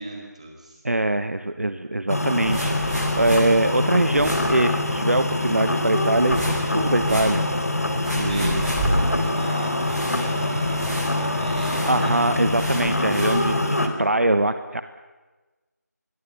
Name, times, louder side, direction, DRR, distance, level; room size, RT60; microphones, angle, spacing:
voice 1, 0.0-0.8 8.0-12.2, right 1 dB, 20° right, 1 dB, 4.7 m, -36 dB
voice 2, 0.8-7.4 8.1-8.6 11.9-14.8, right 2 dB, 55° right, 10 dB, 1.2 m, -23 dB
sound 1, 2.1-13.9, left 1 dB, 60° left, 3.8 m, -24 dB
sound 2, 2.3-13.4, equal, ahead, 5.7 m, -32 dB
27.0 x 22.5 x 7.1 m, 1.2 s
figure-of-eight pair, 175°, 9 cm